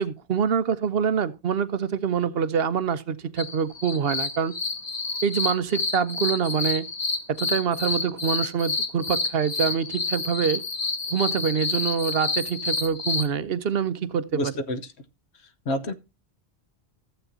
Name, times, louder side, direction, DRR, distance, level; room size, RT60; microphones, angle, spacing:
voice 1, 0.0-4.6 5.2-6.9 7.3-10.6 11.1-14.5, right 7 dB, 65° right, 0.9 m, -25 dB
sound 1, 3.4-13.3, left 3 dB, 40° left, 1.1 m, -29 dB
voice 2, 14.3-14.8 15.7-15.9, left 1 dB, 70° left, 1.3 m, -27 dB
14.5 x 7.9 x 2.7 m
omnidirectional pair, 1.1 m